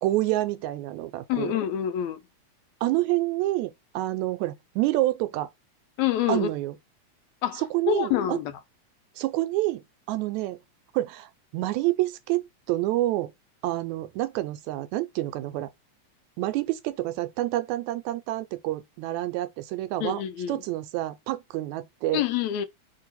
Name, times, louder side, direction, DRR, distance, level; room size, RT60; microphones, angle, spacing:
voice 1, 0.0-1.6 2.8-5.5 6.3-6.8 7.6-8.4 9.2-9.8 10.1-10.6 10.9-13.3 13.6-15.7 16.4-20.2 20.5-22.2, right 16 dB, 80° right, 1.9 m, -28 dB
voice 2, 1.3-2.2 6.0-6.5 7.4-8.5 20.0-20.6 22.1-22.7, left 10 dB, 80° left, 1.9 m, -27 dB
4.5 x 2.8 x 4.0 m
omnidirectional pair, 3.4 m